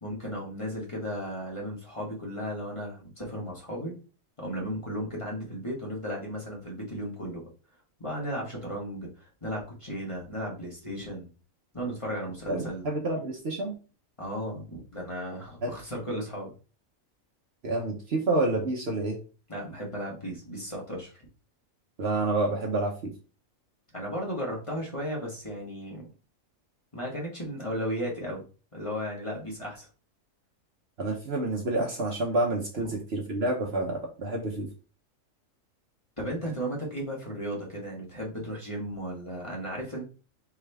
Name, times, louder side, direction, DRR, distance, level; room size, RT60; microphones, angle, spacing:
voice 1, 0.0-3.9 4.4-7.4 8.0-11.3 11.7-12.8 14.2-16.5 19.5-21.1 23.9-26.1 26.9-28.4 28.7-29.9 32.7-32.8 36.2-40.0, equal, 25° left, -3 dB, 1.4 m, -35 dB
voice 2, 12.5-13.7 15.6-15.7 17.6-19.2 22.0-23.1 31.0-34.7, right 2 dB, 55° right, 2 dB, 1.0 m, -28 dB
4.3 x 3.6 x 3.3 m, 0.35 s
omnidirectional pair, 1.4 m